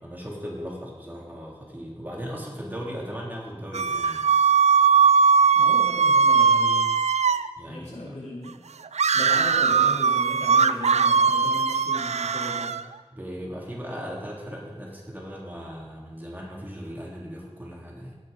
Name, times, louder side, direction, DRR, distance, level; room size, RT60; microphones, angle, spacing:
voice 1, 0.0-4.3 7.6-8.2 13.1-18.1, equal, 15° right, -3 dB, 3.1 m, -37 dB
sound 1, 3.7-7.5 8.9-12.8, right 5 dB, 90° right, 0.4 m, -20 dB
voice 2, 5.5-6.9 7.6-8.6 9.1-12.8, left 1 dB, 90° left, -6 dB, 3.9 m, -37 dB
17.5 x 6.5 x 5.2 m, 1.4 s
wide cardioid pair, 60°, 11 cm